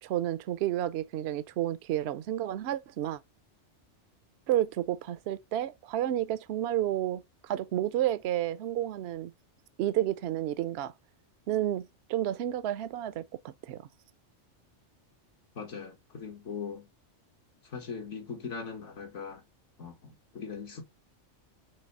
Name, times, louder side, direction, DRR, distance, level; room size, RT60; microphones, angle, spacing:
voice 1, 0.0-3.2 4.5-9.3 9.8-10.9 11.5-13.9, right 12 dB, 65° right, 0.8 m, -31 dB
voice 2, 15.5-16.9 17.6-19.4 19.8-20.8, left 5 dB, 75° left, 1.7 m, -40 dB
6.6 x 3.1 x 5.2 m
omnidirectional pair, 1.2 m